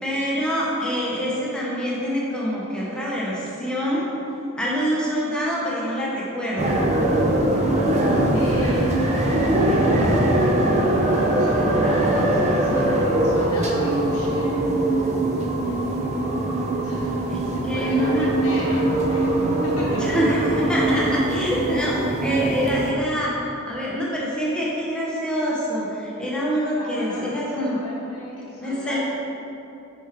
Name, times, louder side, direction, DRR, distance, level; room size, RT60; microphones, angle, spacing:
voice 1, 0.0-4.1 4.6-6.8 17.3-17.4 17.6-18.3 20.0-23.3 23.7-27.8 28.6-29.0, equal, 5° left, -7 dB, 1.0 m, -25 dB
sound 1, 6.6-22.9, right 1 dB, 30° right, 0.6 m, -21 dB
voice 2, 8.3-10.0 11.2-14.6 15.6-16.3 16.8-17.3 17.6-19.3 19.8-20.0 26.7-29.0, left 1 dB, 70° left, -7 dB, 0.9 m, -37 dB
5.7 x 5.4 x 3.2 m, 2.8 s
head